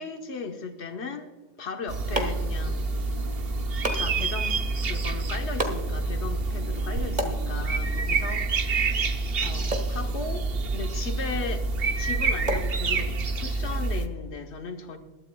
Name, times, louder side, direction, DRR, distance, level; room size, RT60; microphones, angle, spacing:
voice 1, 0.0-2.9 3.9-8.9 9.4-10.5 10.7-11.7 12.0-15.0, left 4 dB, 90° left, 4 dB, 1.4 m, -37 dB
sound 1, 1.5-13.4, right 1 dB, 40° right, 1.7 m, -38 dB
sound 2, 1.9-14.1, right 3 dB, 65° right, 1.2 m, -27 dB
21.0 x 12.5 x 2.3 m, 1.2 s
omnidirectional pair, 1.1 m